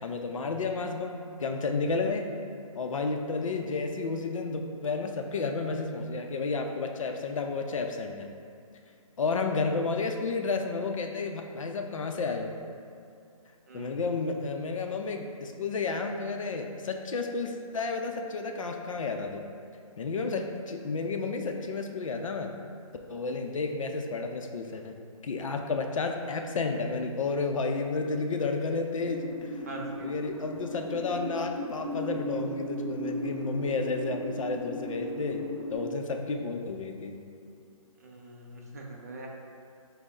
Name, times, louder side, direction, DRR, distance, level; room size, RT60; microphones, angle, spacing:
voice 1, 0.0-2.3 2.8-8.3 9.2-12.5 13.7-19.5 20.0-22.5 23.1-24.9 25.2-29.6 30.0-35.4 35.7-37.1, left 4 dB, 65° left, 4 dB, 0.5 m, -31 dB
voice 2, 13.7-14.1 29.6-30.2 30.4-30.5 38.0-39.3, right 2 dB, 30° right, -1 dB, 0.4 m, -43 dB
sound 1, 29.0-35.8, equal, 5° left, 1.2 m, -37 dB
5.3 x 2.0 x 3.9 m, 2.5 s
hypercardioid pair, 165°, 18 cm